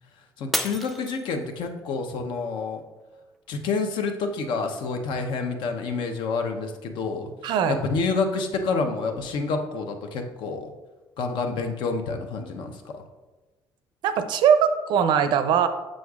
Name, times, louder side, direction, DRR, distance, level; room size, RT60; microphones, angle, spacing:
voice 1, 0.4-2.8 3.5-7.3 7.7-10.7 11.2-13.0, left 4 dB, 75° left, 5 dB, 0.7 m, -28 dB
Shatter, 0.5-1.8 2.3-2.8 3.3-3.4, equal, ahead, 0.3 m, -31 dB
voice 2, 7.4-7.8 14.0-15.7, right 8 dB, 70° right, 10 dB, 0.5 m, -20 dB
6.3 x 6.3 x 2.4 m, 1.2 s
cardioid pair, 120°, 8 cm